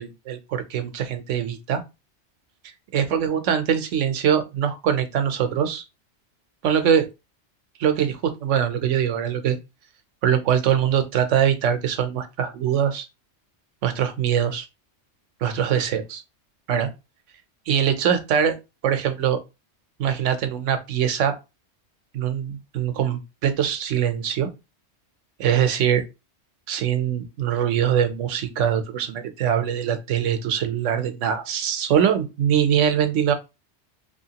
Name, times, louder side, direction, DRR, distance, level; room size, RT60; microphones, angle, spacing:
voice 1, 0.0-1.8 2.9-5.8 6.6-7.1 7.8-9.6 10.2-13.1 13.8-14.6 15.4-16.2 16.7-16.9 17.7-18.6 18.8-19.4 20.0-21.3 22.1-24.5 25.4-26.0 26.7-33.3, right 9 dB, 90° right, 1.1 m, -22 dB
3.5 x 3.1 x 2.8 m
omnidirectional pair, 1.2 m